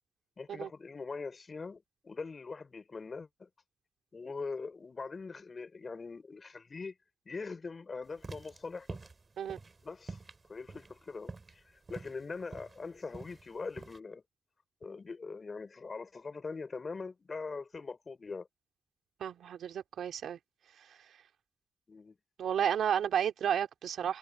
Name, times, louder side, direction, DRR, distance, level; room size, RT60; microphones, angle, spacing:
voice 1, 0.4-3.5 4.1-6.9 7.2-9.0 9.8-10.2 10.5-11.6 11.9-14.2 14.8-18.5 21.9-22.2, left 4 dB, 45° left, 4.6 m, -42 dB
sound 1, 8.1-14.0, right 3 dB, 35° right, 5.9 m, -47 dB
voice 2, 19.2-20.4 22.4-24.2, right 9 dB, 80° right, 3.2 m, -32 dB
cardioid pair, 60°, 0 cm